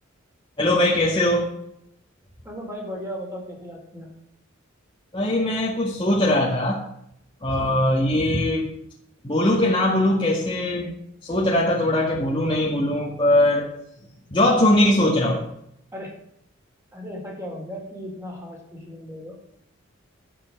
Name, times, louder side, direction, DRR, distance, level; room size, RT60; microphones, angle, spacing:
voice 1, 0.6-1.5 5.1-6.8 7.4-8.7 9.2-13.7 14.3-15.4, left 1 dB, 25° left, -3 dB, 1.8 m, -21 dB
voice 2, 2.4-4.1 14.3-15.1 15.9-16.2 16.9-19.4, equal, 15° right, 0 dB, 3.9 m, -36 dB
12.5 x 7.3 x 7.6 m, 0.77 s
head